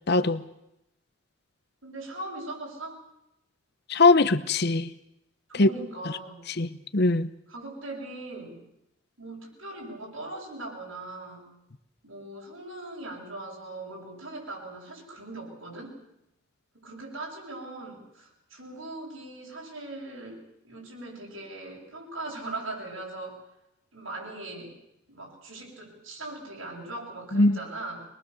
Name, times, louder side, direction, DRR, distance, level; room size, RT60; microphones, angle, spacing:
voice 1, 0.1-0.4 3.9-4.9 5.6-5.7 6.6-7.3 27.3-27.6, left 3 dB, 50° left, 14 dB, 1.0 m, -21 dB
voice 2, 1.8-3.0 5.5-6.4 7.5-8.6 9.2-11.5 12.0-16.0 16.7-20.4 20.6-23.4 23.9-24.8 25.1-28.1, right 2 dB, 80° right, -1 dB, 7.8 m, -40 dB
24.0 x 21.5 x 7.2 m, 0.83 s
head